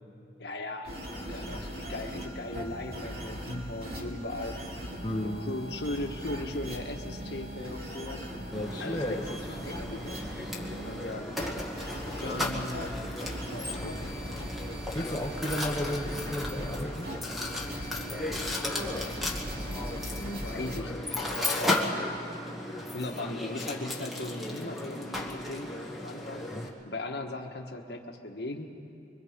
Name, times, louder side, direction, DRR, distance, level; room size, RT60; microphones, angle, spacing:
voice 1, 0.4-4.5 5.1-8.2 8.8-10.3 10.8-11.3 12.2-13.0 13.5-14.0 17.9-18.4 19.6-21.6 22.9-25.7 26.0-26.4 26.8-28.6, left 2 dB, 65° left, 2 dB, 1.4 m, -38 dB
sound 1, 0.8-20.8, equal, 55° right, 2.9 m, -39 dB
voice 2, 5.0-5.5 8.4-9.3 14.9-17.1 26.5-26.7, equal, 20° left, -3 dB, 0.9 m, -33 dB
Mechanisms, 8.5-26.7, left 1 dB, ahead, 1.7 m, -35 dB
25.0 x 23.5 x 5.1 m, 2.7 s
head